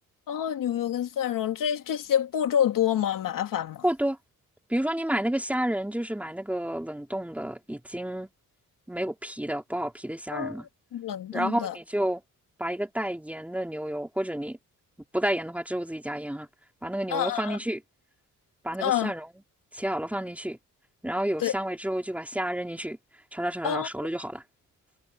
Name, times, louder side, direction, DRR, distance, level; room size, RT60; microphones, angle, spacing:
voice 1, 0.3-3.8 10.3-10.6 10.9-11.8 17.1-17.6 18.8-19.1 21.4-21.5 23.6-23.9, left 10 dB, 75° left, 2.3 m, -27 dB
voice 2, 3.8-4.2 4.7-8.3 8.9-10.7 11.3-12.2 12.6-14.6 15.1-16.5 16.8-17.8 18.6-19.3 19.7-20.6 21.0-23.0 23.3-24.4, right 1 dB, 5° right, 3.4 m, -30 dB
cardioid pair, 145°, 33 cm